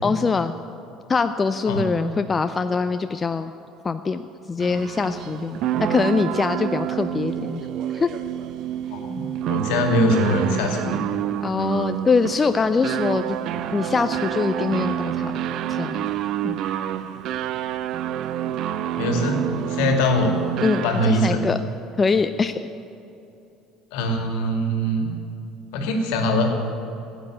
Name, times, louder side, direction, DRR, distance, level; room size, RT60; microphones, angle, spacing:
voice 1, 0.0-0.5 1.1-3.5 3.8-4.2 4.5-5.6 5.9-7.7 7.9-8.1 11.4-13.4 13.7-15.3 15.7-16.0 16.4-16.6 20.6-21.6 22.0-22.7, left 4 dB, 30° left, 10 dB, 0.5 m, -23 dB
voice 2, 1.7-2.1 8.9-11.0 19.0-20.3 20.8-21.5 23.9-25.1 25.7-26.5, left 1 dB, 70° left, 3 dB, 2.1 m, -22 dB
sound 1, 4.6-21.3, right 11 dB, 55° right, 0.5 m, -28 dB
14.5 x 8.2 x 8.7 m, 2.7 s
hypercardioid pair, 65°, 0 cm